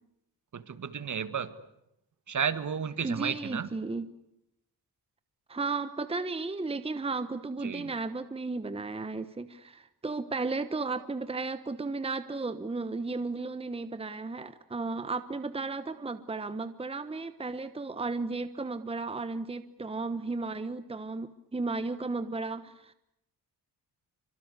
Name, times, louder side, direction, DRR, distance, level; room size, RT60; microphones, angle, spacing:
voice 1, 0.5-1.5 2.3-3.7 7.6-7.9, right 7 dB, 45° right, 12 dB, 1.9 m, -32 dB
voice 2, 3.0-4.1 5.5-22.9, right 3 dB, 15° right, 12 dB, 1.1 m, -34 dB
27.5 x 25.0 x 8.3 m, 0.80 s
cardioid pair, 115°, 40 cm